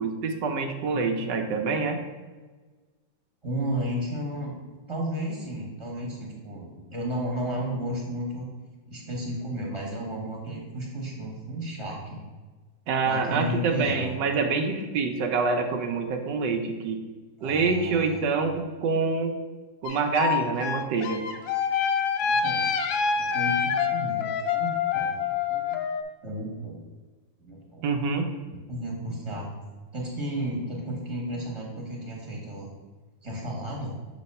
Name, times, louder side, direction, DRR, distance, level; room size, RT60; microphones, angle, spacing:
voice 1, 0.0-2.0 12.9-17.0 17.4-19.3 19.8-21.2 27.8-28.3, right 4 dB, 70° right, 5 dB, 1.2 m, -26 dB
voice 2, 0.9-1.5 3.4-4.6 4.9-8.5 8.9-12.2 13.0-14.2 17.4-18.2 22.2-22.6 23.2-25.2 25.5-25.8 26.2-26.8 27.4-27.8 28.5-29.5 29.9-32.7 33.2-34.0, equal, 15° right, -3 dB, 1.2 m, -33 dB
sound 1, 19.8-26.0, left 7 dB, 80° left, 1.3 m, -26 dB
6.5 x 3.1 x 5.4 m, 1.3 s
omnidirectional pair, 2.1 m